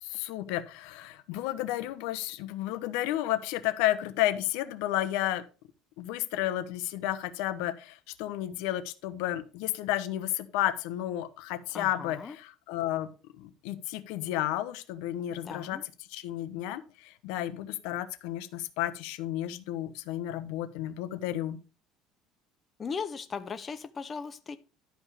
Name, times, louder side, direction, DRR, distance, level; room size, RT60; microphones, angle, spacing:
voice 1, 0.0-5.4 6.0-13.1 13.4-15.8 16.1-21.6, left 14 dB, 80° left, 12 dB, 1.0 m, -32 dB
voice 2, 11.7-12.4 15.3-15.8 22.8-24.6, left 5 dB, 25° left, 10 dB, 0.6 m, -38 dB
11.5 x 5.4 x 4.9 m, 0.33 s
cardioid pair, 150°, 0 cm